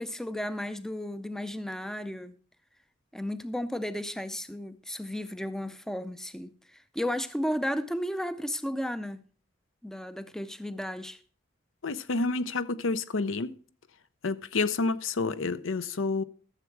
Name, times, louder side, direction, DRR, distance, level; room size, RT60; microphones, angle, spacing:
voice 1, 0.0-2.4 3.1-9.2 9.8-11.2, equal, ahead, 0.5 m, -34 dB
voice 2, 11.8-13.5 14.2-16.2, left 3 dB, 75° left, 0.7 m, -29 dB
13.5 x 7.2 x 4.6 m
head